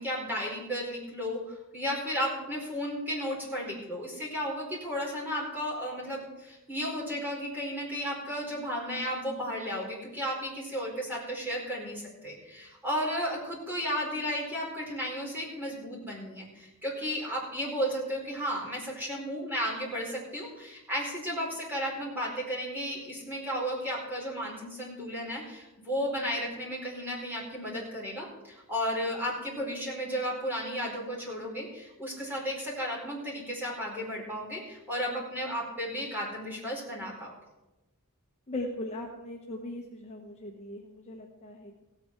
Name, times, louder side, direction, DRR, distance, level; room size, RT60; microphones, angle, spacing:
voice 1, 0.0-37.3, equal, 10° right, -4 dB, 4.5 m, -34 dB
voice 2, 38.5-41.8, left 1 dB, 30° left, 0 dB, 1.1 m, -39 dB
16.5 x 8.8 x 4.6 m, 1.0 s
head